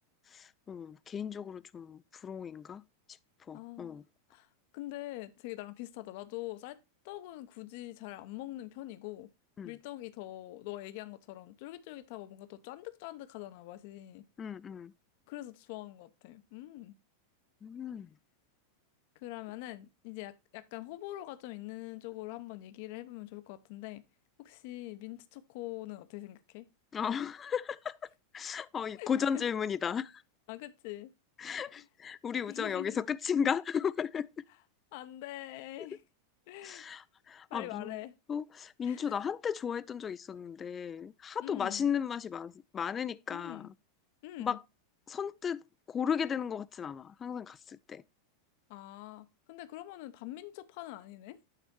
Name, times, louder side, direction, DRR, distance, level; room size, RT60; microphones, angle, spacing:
voice 1, 0.3-2.8 3.5-4.0 9.6-9.7 14.4-14.9 17.6-18.1 26.9-28.0 28.3-30.2 31.4-34.3 36.6-38.0 38.3-43.7 44.4-44.6 45.1-45.6 45.9-48.0, left 7 dB, 20° left, 0.3 m, -35 dB
voice 2, 3.5-4.0 4.3-4.5 4.7-6.8 7.0-9.3 9.6-14.2 15.3-17.0 19.2-24.0 24.4-26.7 28.9-29.5 30.5-31.1 31.7-31.8 32.5-33.0 34.9-36.0 36.5-36.9 37.5-38.2 38.8-39.2 41.4-41.9 43.3-43.7 44.2-44.6 48.7-51.4, left 16 dB, 50° left, 0.7 m, -44 dB
9.3 x 4.2 x 4.4 m
figure-of-eight pair, 90°, 0 cm